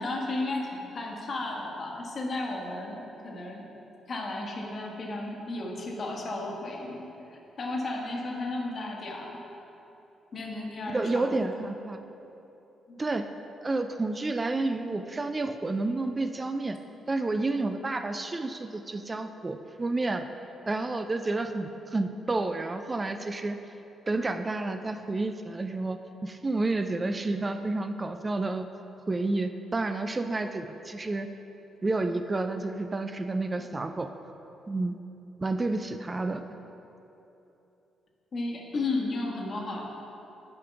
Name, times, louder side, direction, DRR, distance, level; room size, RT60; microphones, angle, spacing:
voice 1, 0.0-3.7 4.1-9.4 10.3-11.7 12.9-13.0 33.6-33.7 38.3-39.8, left 2 dB, 50° left, -1 dB, 1.4 m, -34 dB
voice 2, 10.9-12.0 13.0-13.3 13.6-16.8 17.1-20.3 20.7-23.6 24.1-28.7 29.1-31.3 31.8-34.1 34.7-35.0 35.4-36.4, right 2 dB, 30° right, 8 dB, 0.4 m, -30 dB
8.3 x 5.0 x 5.8 m, 3.0 s
hypercardioid pair, 40°, 0 cm